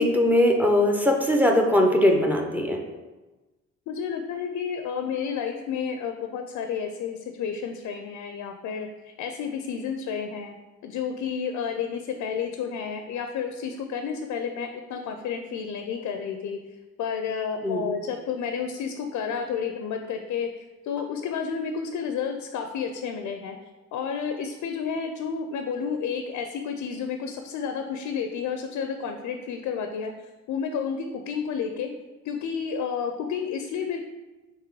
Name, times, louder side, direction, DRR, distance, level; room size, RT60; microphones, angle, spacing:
voice 1, 0.0-2.8 17.6-17.9, left 1 dB, 5° right, 2 dB, 0.6 m, -21 dB
voice 2, 3.9-10.5 10.8-16.6 17.0-23.6 23.9-30.1 30.5-31.9 32.2-34.0, left 6 dB, 70° left, 6 dB, 0.4 m, -31 dB
3.7 x 3.0 x 4.6 m, 1.2 s
cardioid pair, 90°, 30 cm